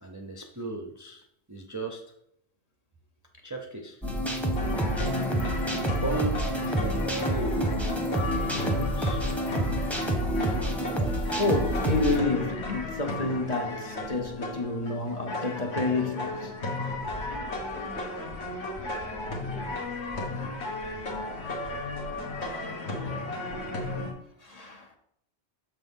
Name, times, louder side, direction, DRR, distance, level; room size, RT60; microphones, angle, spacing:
voice 1, 0.0-2.0 3.4-4.0 5.1-5.4 6.0-7.7 8.2-9.2 23.0-23.1, right 3 dB, 20° right, 0.5 m, -36 dB
sound 1, 4.0-12.2, right 1 dB, ahead, 0.8 m, -28 dB
sound 2, 4.6-24.1, left 2 dB, 75° left, 1.5 m, -34 dB
voice 2, 5.0-5.4 8.1-8.3 11.4-16.5 23.0-23.3 24.4-24.9, left 2 dB, 40° left, 0.9 m, -29 dB
6.8 x 5.8 x 3.6 m
omnidirectional pair, 1.1 m